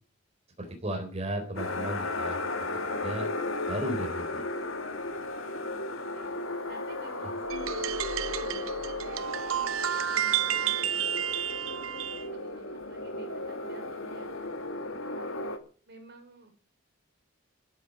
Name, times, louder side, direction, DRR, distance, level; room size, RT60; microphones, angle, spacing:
voice 1, 0.6-3.3 3.7-4.4 7.2-7.3, right 1 dB, 30° right, 3 dB, 4.0 m, -35 dB
sound 1, 1.6-15.6, left 2 dB, 80° left, 2.4 m, -35 dB
voice 2, 5.7-6.3 6.6-11.6 12.1-15.3 15.9-16.5, right 2 dB, 55° right, 6 dB, 5.1 m, -52 dB
sound 2, 7.4-10.0 10.3-10.5, equal, 55° left, 4.0 m, -49 dB
sound 3, 7.5-12.3, right 9 dB, 80° right, 0.9 m, -31 dB
15.5 x 8.6 x 7.9 m, 0.40 s
head